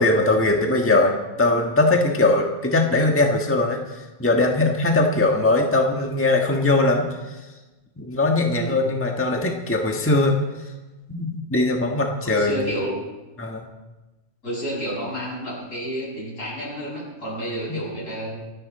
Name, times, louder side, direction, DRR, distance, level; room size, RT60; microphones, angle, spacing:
voice 1, 0.0-3.8 4.2-7.0 8.0-10.4 11.1-12.7 13.4-13.6 17.7-17.8, left 2 dB, 10° left, 1 dB, 1.4 m, -20 dB
voice 2, 11.8-13.0 14.4-18.4, equal, 80° left, -5 dB, 7.5 m, -30 dB
26.5 x 10.0 x 4.2 m, 1.1 s
omnidirectional pair, 1.3 m